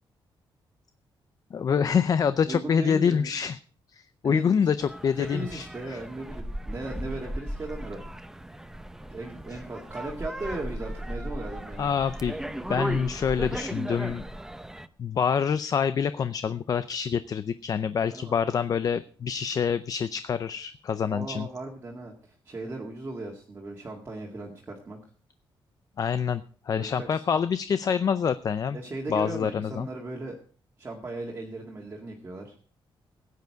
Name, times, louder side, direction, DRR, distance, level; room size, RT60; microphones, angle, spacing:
voice 1, 1.5-3.6 3.9-6.0 11.8-12.4 12.7-14.2 15.0-21.5 26.0-28.8 29.1-29.9, left 7 dB, 40° left, 13 dB, 0.5 m, -26 dB
voice 2, 2.5-3.3 4.2-4.7 5.2-8.0 9.1-11.9 18.1-18.4 21.1-25.0 26.8-27.2 28.7-30.4 30.8-32.5, right 2 dB, 25° right, -1 dB, 2.0 m, -37 dB
sound 1, 4.8-14.9, right 1 dB, 5° right, 0.6 m, -36 dB
16.0 x 9.4 x 4.7 m, 0.42 s
wide cardioid pair, 160°, 9 cm